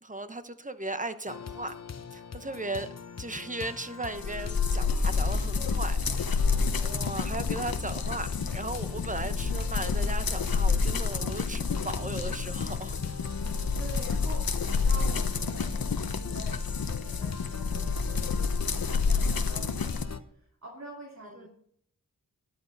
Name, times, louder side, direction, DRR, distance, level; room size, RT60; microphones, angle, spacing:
voice 1, 0.0-1.7 2.1-2.9 3.2-13.6, right 2 dB, 20° right, 10 dB, 1.1 m, -37 dB
sound 1, 1.3-20.2, left 5 dB, 45° left, 0.8 m, -39 dB
sound 2, 4.2-20.0, left 5 dB, 80° left, 1.1 m, -29 dB
voice 2, 5.0-6.4 13.8-21.5, right 1 dB, 50° right, -3 dB, 3.0 m, -46 dB
13.5 x 11.5 x 4.1 m, 0.65 s
wide cardioid pair, 60°, 35 cm